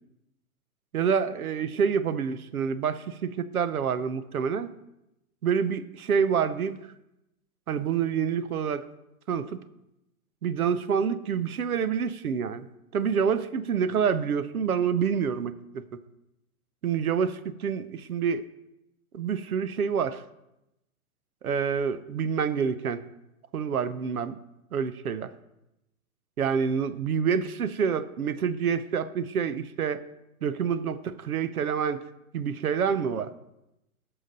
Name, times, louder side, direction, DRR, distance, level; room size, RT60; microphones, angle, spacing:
voice 1, 0.9-4.7 5.4-6.8 7.7-8.9 9.3-9.6 10.4-12.7 12.9-15.8 16.8-18.4 19.1-20.2 21.4-23.0 23.5-24.4 24.7-25.3 26.4-30.0 30.4-32.0 32.3-33.3, right 7 dB, 90° right, 13 dB, 0.8 m, -27 dB
15.5 x 6.0 x 3.9 m, 0.89 s
hypercardioid pair, 125°, 42 cm